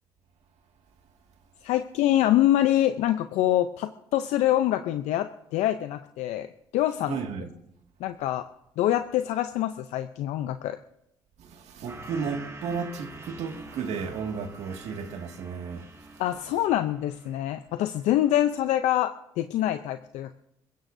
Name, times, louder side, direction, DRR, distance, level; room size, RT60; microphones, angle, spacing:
voice 1, 1.6-7.2 8.0-8.4 8.8-10.8 16.2-20.4, left 13 dB, 85° left, 0.6 m, -25 dB
voice 2, 7.1-7.5 11.4-15.9, right 5 dB, 70° right, 2.0 m, -33 dB
sound 1, 11.9-17.6 18.0-18.4, right 2 dB, 25° right, 2.3 m, -46 dB
26.0 x 15.5 x 2.7 m
cardioid pair, 85°, 11 cm